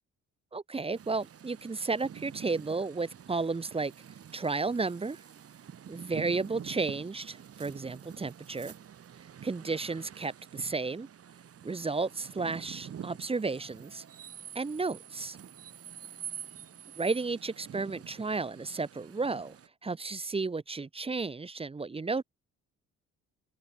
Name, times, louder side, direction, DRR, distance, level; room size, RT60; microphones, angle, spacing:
voice 1, 0.5-3.9 4.3-5.2 5.9-8.7 9.4-11.1 11.6-14.0 14.5-15.4 17.0-19.6 19.8-22.2, right 4 dB, 20° right, 0.8 m, -33 dB
sound 1, 0.9-19.7, right 8 dB, 50° right, 1.7 m, -47 dB
open air
cardioid pair, 90°, 30 cm